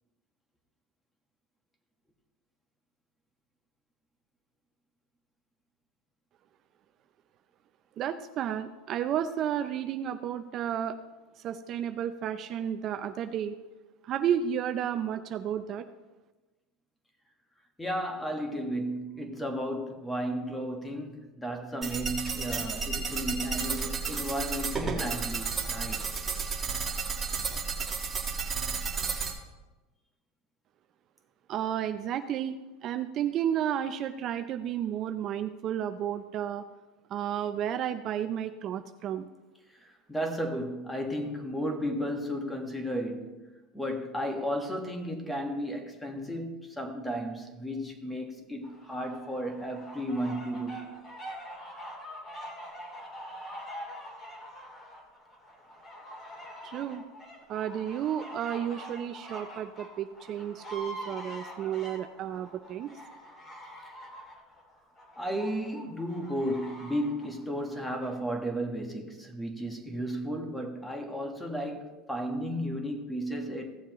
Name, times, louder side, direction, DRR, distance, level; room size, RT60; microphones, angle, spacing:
voice 1, 8.0-10.9 11.4-13.6 14.0-15.8 31.5-32.5 32.8-36.6 37.1-39.3 56.6-57.0 57.5-62.9, right 9 dB, 45° right, 0.5 m, -32 dB
voice 2, 17.8-26.0 39.8-43.4 43.7-50.9 65.1-73.8, equal, 10° left, 1.5 m, -34 dB
sound 1, 21.8-29.3, right 5 dB, 20° right, 1.8 m, -32 dB
sound 2, 48.6-68.2, equal, 30° left, 2.8 m, -45 dB
16.0 x 7.2 x 3.0 m
supercardioid pair, 120°, 0 cm